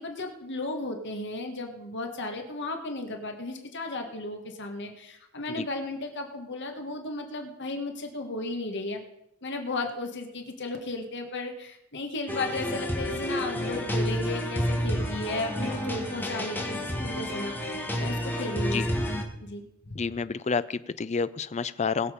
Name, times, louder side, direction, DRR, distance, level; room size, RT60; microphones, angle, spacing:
voice 1, 0.0-9.0 9.4-17.6 18.0-20.0, left 2 dB, 55° left, 4 dB, 1.7 m, -35 dB
sound 1, 12.3-19.2, equal, 10° left, 1.8 m, -30 dB
voice 2, 20.0-22.1, left 5 dB, 30° left, 15 dB, 0.5 m, -29 dB
21.0 x 7.3 x 5.1 m, 0.81 s
head